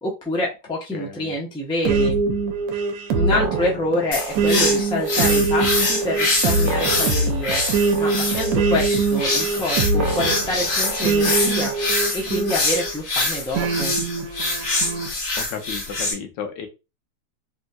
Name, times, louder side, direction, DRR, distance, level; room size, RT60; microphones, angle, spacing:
voice 1, 0.0-2.2 3.1-7.6 8.0-14.0, left 1 dB, 5° left, -3 dB, 0.4 m, -27 dB
voice 2, 0.9-1.3 15.4-16.7, left 6 dB, 80° left, 6 dB, 1.4 m, -33 dB
sound 1, 1.8-12.9 13.5-15.1, right 3 dB, 85° right, 1.3 m, -23 dB
sound 2, 4.1-16.1, left 2 dB, 50° left, 1.3 m, -25 dB
3.6 x 2.7 x 2.2 m, 0.27 s
omnidirectional pair, 1.9 m